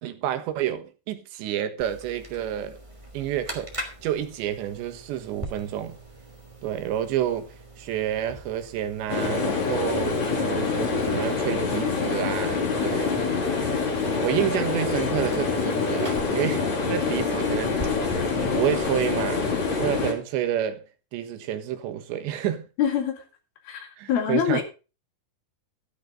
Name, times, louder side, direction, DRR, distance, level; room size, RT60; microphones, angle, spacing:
voice 1, 0.0-2.8 3.1-3.7 4.0-6.0 6.6-13.2 14.2-18.0 18.4-19.5 19.8-20.8 21.1-22.7 24.0-24.6, right 11 dB, 80° right, 3.6 m, -29 dB
sound 1, 1.8-20.0, right 2 dB, 10° right, 2.2 m, -42 dB
sound 2, 9.1-20.1, left 4 dB, 45° left, 3.8 m, -26 dB
voice 2, 22.8-23.2 23.6-24.6, left 8 dB, 60° left, 4.0 m, -25 dB
13.0 x 12.0 x 3.7 m
omnidirectional pair, 5.1 m